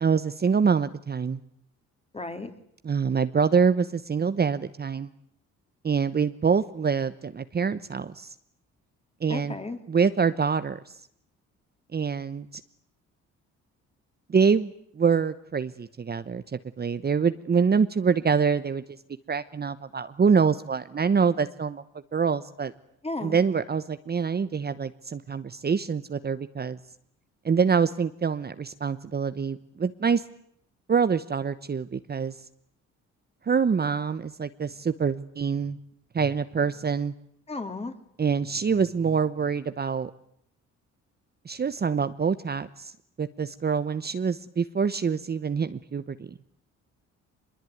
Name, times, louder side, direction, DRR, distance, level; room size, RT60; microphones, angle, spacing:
voice 1, 0.0-1.4 2.8-5.1 5.8-8.3 9.2-9.5 9.9-11.0 11.9-12.6 14.3-18.8 19.3-21.8 22.1-22.7 23.2-26.8 27.4-30.2 30.9-32.4 33.5-35.8 36.1-37.1 38.2-40.1 41.4-42.9 43.2-46.3, right 6 dB, 35° right, 12 dB, 1.0 m, -25 dB
voice 2, 2.1-2.5 9.3-9.8 23.0-23.4 37.5-37.9, left 2 dB, 20° left, 7 dB, 3.3 m, -34 dB
24.0 x 21.5 x 9.4 m, 0.72 s
cardioid pair, 90°, 30 cm